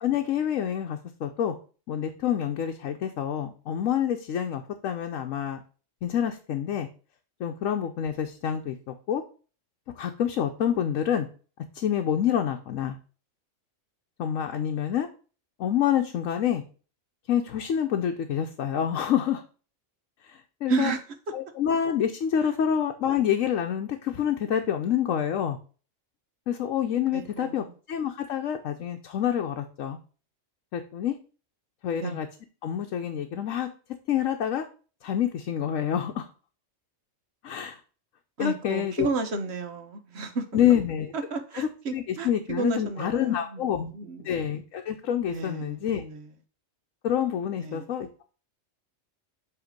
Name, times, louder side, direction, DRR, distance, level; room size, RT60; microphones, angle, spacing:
voice 1, 0.0-1.5 1.9-5.6 6.0-6.9 7.4-9.2 10.0-11.3 11.7-13.0 14.2-15.1 15.6-16.6 17.3-19.4 20.2-20.9 21.3-25.6 26.5-30.0 30.7-31.1 31.8-32.3 32.6-33.7 34.1-34.6 35.0-36.3 37.4-37.8 38.4-39.1 40.5-41.1 41.6-43.9 44.2-46.0 47.0-48.1, left 9 dB, 80° left, 4 dB, 1.1 m, -27 dB
voice 2, 20.7-21.0 22.4-22.5 27.1-27.7 32.0-32.2 38.4-40.5 41.1-43.6 43.9-44.3 45.3-46.2 47.6-47.9, right 3 dB, 60° right, 8 dB, 1.1 m, -32 dB
7.8 x 3.3 x 5.0 m, 0.37 s
omnidirectional pair, 1.4 m